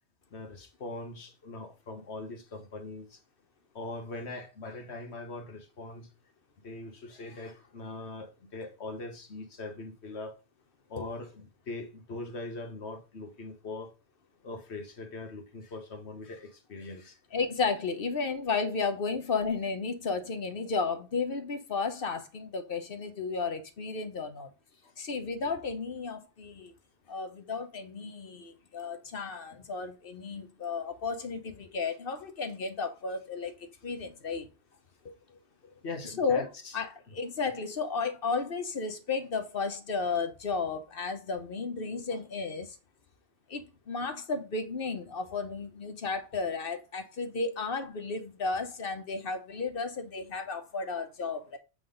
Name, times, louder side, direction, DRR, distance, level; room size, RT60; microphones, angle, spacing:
voice 1, 0.3-3.2 3.7-6.1 6.6-10.4 10.9-13.9 14.4-17.2 24.8-24.9 29.5-29.6 35.8-36.8 42.1-42.2, left 2 dB, 80° left, 1.6 m, -41 dB
voice 2, 17.3-24.5 25.0-26.7 27.1-33.5 33.8-34.5 35.0-35.1 36.2-36.5 36.7-42.8 43.5-51.6, left 4 dB, 60° left, 1.1 m, -33 dB
7.8 x 3.7 x 3.8 m
omnidirectional pair, 1.1 m